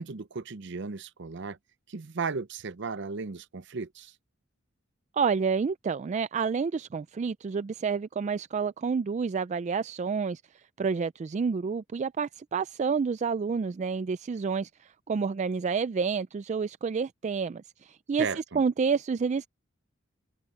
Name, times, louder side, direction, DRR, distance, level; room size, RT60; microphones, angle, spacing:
voice 1, 0.0-1.6 1.9-4.1 18.2-18.6, right 4 dB, 60° right, 0.7 m, -35 dB
voice 2, 5.1-10.4 10.8-18.3 18.5-19.5, right 5 dB, 35° right, 0.3 m, -29 dB
head